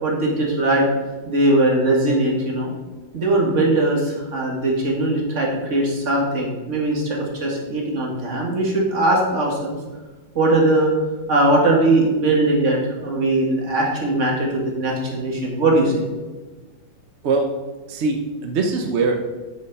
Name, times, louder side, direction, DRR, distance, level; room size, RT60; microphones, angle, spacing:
voice 1, 0.0-0.9 1.3-2.7 3.1-9.8 10.4-10.9 11.3-16.0, right 2 dB, 40° right, -1 dB, 2.1 m, -20 dB
voice 2, 17.9-19.2, right 3 dB, 55° right, 3 dB, 0.7 m, -22 dB
8.2 x 6.5 x 5.4 m, 1.3 s
omnidirectional pair, 2.1 m